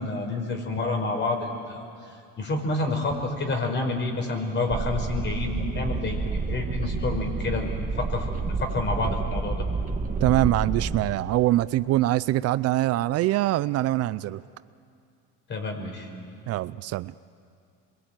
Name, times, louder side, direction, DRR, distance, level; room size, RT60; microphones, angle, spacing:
voice 1, 0.0-1.8 2.4-6.2 6.5-8.3 8.6-9.6 15.5-16.1, left 3 dB, 40° left, 5.5 m, -28 dB
sound 1, 4.7-11.0, right 4 dB, 25° right, 2.0 m, -29 dB
voice 2, 10.2-14.4 16.5-17.1, right 16 dB, 55° right, 0.6 m, -24 dB
27.0 x 22.5 x 9.1 m
supercardioid pair, 100°, 30 cm